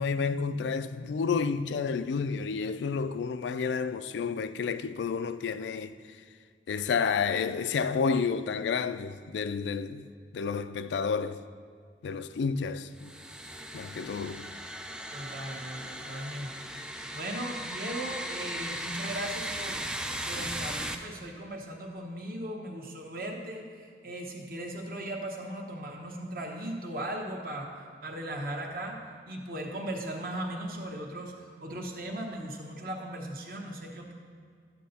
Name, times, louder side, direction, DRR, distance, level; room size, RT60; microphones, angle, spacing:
voice 1, 0.0-6.2 6.7-10.1 10.3-11.4 12.0-13.1 13.7-14.5, left 5 dB, 85° left, 0.3 m, -30 dB
sound 1, 13.0-21.0, right 1 dB, 5° right, 0.3 m, -37 dB
voice 2, 15.1-16.5 17.1-19.8 20.2-29.0 29.3-34.1, right 1 dB, 55° right, 1.1 m, -38 dB
11.5 x 8.3 x 2.8 m
head